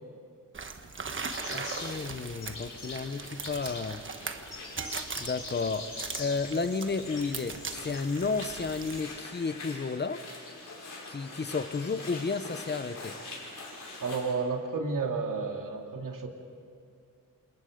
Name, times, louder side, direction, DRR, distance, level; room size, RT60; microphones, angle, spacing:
sound 1, 0.5-9.0, right 4 dB, 35° right, 1.2 m, -40 dB
sound 2, 1.3-14.3, left 2 dB, 60° left, 6.2 m, -43 dB
voice 1, 1.5-4.1 5.2-5.9 6.2-10.2 11.1-13.2, left 4 dB, 30° left, 12 dB, 0.8 m, -32 dB
voice 2, 14.0-16.3, right 4 dB, 65° right, 2 dB, 2.6 m, -31 dB
28.5 x 28.0 x 5.2 m, 2.4 s
wide cardioid pair, 165°, 35 cm